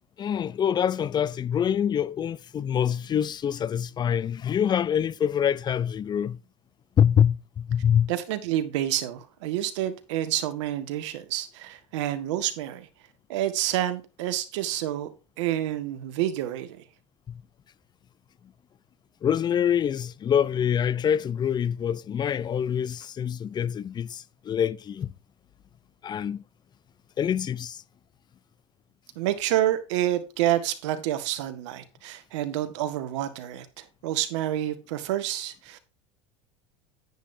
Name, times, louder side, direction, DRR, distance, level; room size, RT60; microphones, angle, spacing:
voice 1, 0.2-6.4 7.0-8.1 19.2-25.1 26.0-26.4 27.2-27.8, left 9 dB, 30° left, 0.6 m, -25 dB
voice 2, 8.1-12.9 13.3-15.1 15.4-16.8 29.2-35.8, right 12 dB, 80° right, 1.7 m, -28 dB
10.5 x 10.0 x 2.8 m
supercardioid pair, 105°, 15 cm